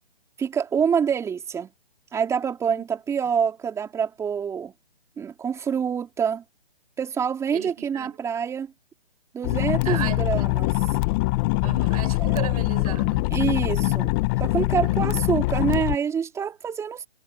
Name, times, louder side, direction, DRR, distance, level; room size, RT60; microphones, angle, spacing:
voice 1, 0.4-1.7 2.1-4.7 5.2-6.4 7.0-8.7 9.3-10.7 12.3-12.4 13.3-14.1 14.4-17.1, right 7 dB, 10° right, 3.6 m, -26 dB
voice 2, 7.5-8.2 9.8-10.6 11.6-13.3 14.8-15.3, right 13 dB, 35° right, 7.5 m, -36 dB
sound 1, 9.4-16.0, left 23 dB, 20° left, 1.0 m, -23 dB
hypercardioid pair, 145°, 31 cm